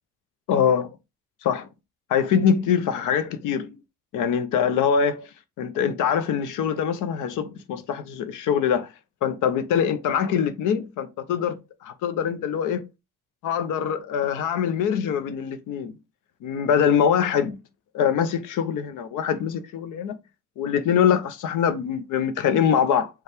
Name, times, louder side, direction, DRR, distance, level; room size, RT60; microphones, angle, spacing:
voice 1, 0.5-0.9 1.4-1.7 2.1-3.7 4.1-5.3 5.6-8.9 9.2-12.8 13.4-15.9 16.4-17.6 17.9-20.2 20.6-23.1, left 8 dB, 85° left, 0.7 m, -23 dB
5.4 x 2.4 x 3.4 m
cardioid pair, 90°, 30 cm